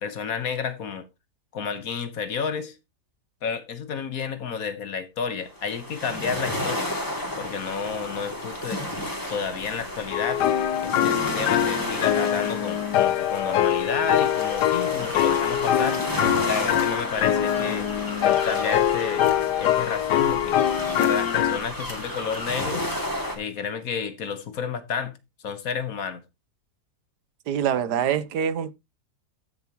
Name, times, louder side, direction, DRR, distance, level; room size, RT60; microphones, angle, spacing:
voice 1, 0.0-1.1 1.5-2.8 3.4-6.9 7.4-8.9 9.3-10.4 10.8-16.0 16.5-17.9 18.2-19.3 19.6-20.6 21.0-22.9 23.4-25.1 25.4-26.2, left 6 dB, 60° left, 1.5 m, -31 dB
sound 1, 5.5-23.4, left 1 dB, 10° left, 2.6 m, -32 dB
sound 2, 10.1-21.6, left 11 dB, 90° left, 1.3 m, -23 dB
voice 2, 27.5-28.7, right 8 dB, 80° right, 1.4 m, -25 dB
14.5 x 7.0 x 3.0 m
omnidirectional pair, 1.7 m